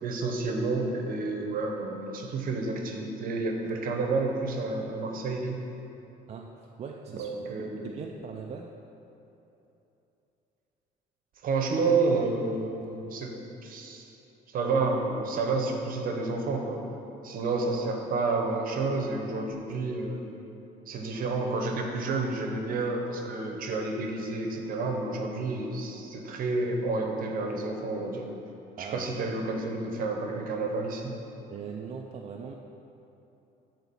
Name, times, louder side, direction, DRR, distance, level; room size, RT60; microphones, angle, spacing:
voice 1, 0.0-5.6 7.2-7.9 11.4-13.3 13.6-14.0 14.5-16.8 17.2-20.2 20.9-28.3 28.8-31.1, right 3 dB, 55° right, 2 dB, 0.9 m, -30 dB
voice 2, 6.3-7.5 7.8-8.7 28.8-29.1 31.5-32.5, right 6 dB, 40° right, 1 dB, 0.4 m, -40 dB
8.3 x 4.0 x 4.1 m, 3.0 s
cardioid pair, 110°, 17 cm